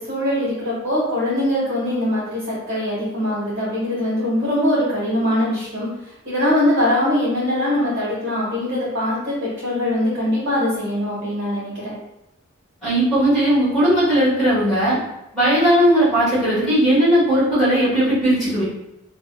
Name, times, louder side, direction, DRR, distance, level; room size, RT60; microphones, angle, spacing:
voice 1, 0.0-5.9 6.2-11.9, left 1 dB, 70° right, -9 dB, 1.2 m, -22 dB
voice 2, 12.8-15.0 15.3-18.6, right 1 dB, ahead, -15 dB, 1.3 m, -17 dB
2.7 x 2.4 x 2.2 m, 0.88 s
head